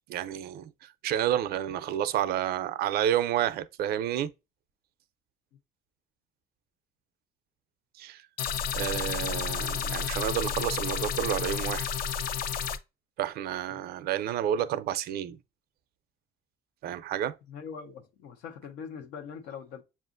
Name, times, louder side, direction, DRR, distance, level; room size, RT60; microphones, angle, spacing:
voice 1, 0.1-4.3 8.0-8.2 8.7-11.9 13.2-15.4 16.8-17.4, right 11 dB, 65° right, 0.4 m, -30 dB
sound 1, 8.4-12.8, left 7 dB, 60° left, 0.4 m, -31 dB
voice 2, 17.5-19.8, left 6 dB, 90° left, 0.8 m, -42 dB
7.1 x 2.5 x 2.5 m
cardioid pair, 110°, 17 cm